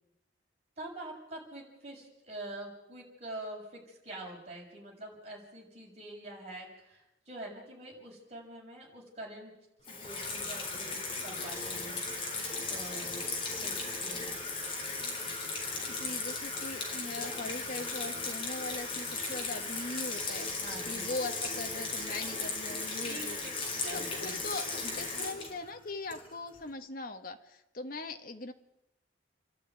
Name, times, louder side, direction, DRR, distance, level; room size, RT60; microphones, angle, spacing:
voice 1, 0.8-9.5 9.9-12.0 12.7-13.3 13.6-13.7 14.0-14.4 20.6-21.1 23.0-23.2 23.8-24.4, right 1 dB, 35° right, -2 dB, 6.8 m, -45 dB
Water tap faucet / Sink (filling or washing), 9.8-26.6, left 3 dB, 30° left, 4.3 m, -36 dB
voice 2, 15.9-23.4 23.8-28.5, left 3 dB, 45° left, 6 dB, 1.5 m, -40 dB
29.0 x 12.0 x 9.5 m, 0.93 s
head